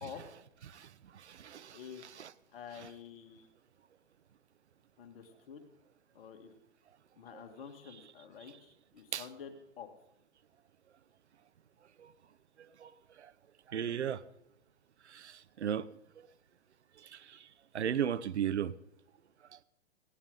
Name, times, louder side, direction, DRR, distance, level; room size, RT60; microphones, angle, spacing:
voice 1, 0.0-0.3 1.7-2.0 2.5-3.5 5.0-5.6 6.1-6.5 7.2-9.9, left 7 dB, 55° left, 2.0 m, -48 dB
voice 2, 1.1-1.8 2.2-2.3 9.1-9.2 12.0-12.1 12.8-12.9 13.2-13.3 13.7-14.2 15.1-15.9 17.0-17.4 17.7-18.7, right 9 dB, 75° right, 0.8 m, -35 dB
19.5 x 16.0 x 3.9 m
hypercardioid pair, 120°, 34 cm